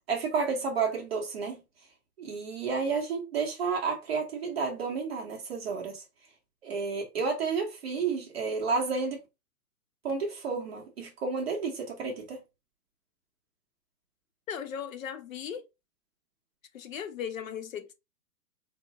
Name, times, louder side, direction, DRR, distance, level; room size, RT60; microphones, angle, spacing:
voice 1, 0.1-1.6 2.2-6.0 6.6-9.2 10.0-12.4, right 5 dB, 35° right, 1.0 m, -31 dB
voice 2, 14.5-15.6 16.7-17.9, left 8 dB, 55° left, 0.7 m, -37 dB
4.6 x 2.1 x 3.6 m
hypercardioid pair, 165°, 50 cm